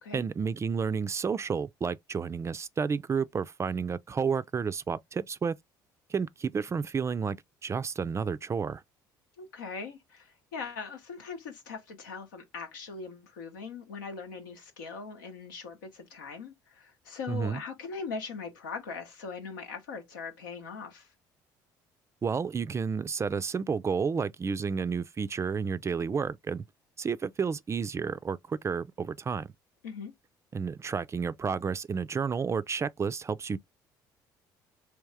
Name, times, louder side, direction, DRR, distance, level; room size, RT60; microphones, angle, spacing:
voice 1, 0.1-5.5 6.1-7.4 7.6-8.8 17.3-17.6 22.2-26.6 27.0-29.5 30.5-33.6, right 5 dB, 30° right, 0.3 m, -31 dB
voice 2, 9.4-21.1 29.8-30.1, left 5 dB, 90° left, 0.9 m, -40 dB
3.5 x 3.0 x 3.3 m
hypercardioid pair, 65°, 10 cm